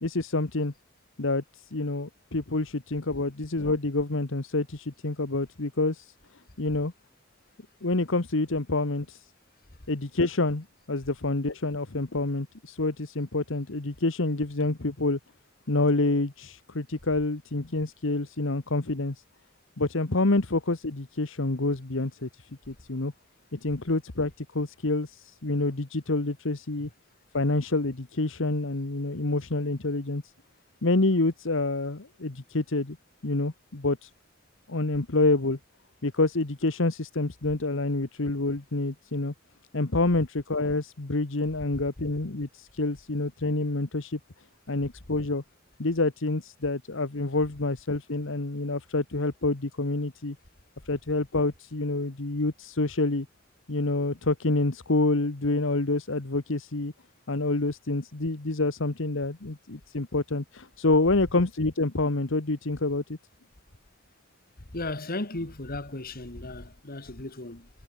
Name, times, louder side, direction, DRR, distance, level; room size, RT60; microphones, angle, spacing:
voice 1, 0.0-0.7 1.2-6.1 6.6-6.9 7.8-9.2 9.9-15.2 15.7-19.2 19.8-22.3 22.7-23.1 23.5-26.9 27.3-30.2 30.8-33.0 33.2-34.1 34.7-35.6 36.0-39.3 39.7-44.2 44.7-45.4 45.8-50.4 50.8-53.3 53.7-56.9 57.3-63.2, left 2 dB, 65° left, 1.3 m, -27 dB
voice 2, 64.7-67.7, left 2 dB, 45° left, 2.4 m, -35 dB
head